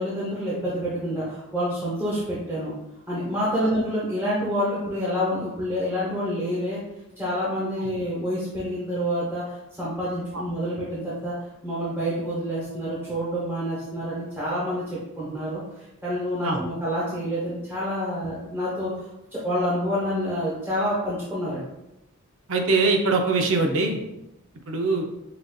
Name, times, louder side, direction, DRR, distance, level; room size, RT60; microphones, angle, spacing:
voice 1, 0.0-2.7 3.1-6.8 7.2-11.3 11.6-15.6 16.0-18.9 19.3-21.6, equal, 10° right, -9 dB, 1.0 m, -27 dB
voice 2, 22.5-24.0 24.7-25.0, right 3 dB, 65° right, 3 dB, 0.6 m, -22 dB
4.9 x 2.6 x 2.3 m, 0.90 s
head